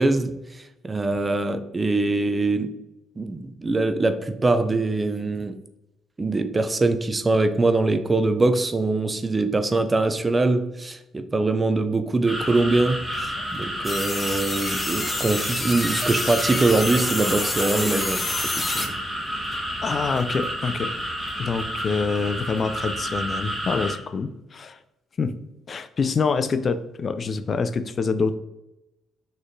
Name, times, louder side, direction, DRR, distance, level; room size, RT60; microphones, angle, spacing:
voice 1, 0.0-2.7 3.2-5.6 6.2-18.9, right 2 dB, 25° right, 9 dB, 0.4 m, -23 dB
sound 1, 12.2-23.9, equal, 10° right, 1.3 m, -30 dB
sound 2, 13.8-18.9, left 2 dB, 25° left, 0.7 m, -29 dB
voice 2, 19.8-20.9 21.4-24.8 25.2-25.3 25.7-28.3, left 4 dB, 45° left, 11 dB, 0.3 m, -26 dB
4.1 x 3.1 x 2.6 m, 0.91 s
supercardioid pair, 65°, 0 cm